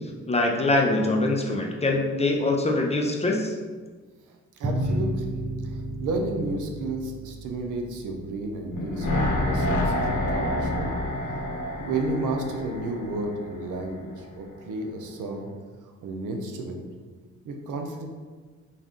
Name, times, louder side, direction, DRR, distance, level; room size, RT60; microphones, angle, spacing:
voice 1, 0.3-3.5, left 2 dB, 20° left, 0 dB, 0.5 m, -23 dB
voice 2, 4.3-5.3 5.6-10.9 11.7-15.5 16.0-16.8 17.4-18.1, right 2 dB, 85° right, 3 dB, 0.6 m, -32 dB
sound 1, 4.6-9.8, right 1 dB, 25° right, 0.5 m, -33 dB
sound 2, 8.7-13.9 14.2-14.3, left 1 dB, 85° left, 0.7 m, -28 dB
4.1 x 2.4 x 3.6 m, 1.4 s
cardioid pair, 100°, 30 cm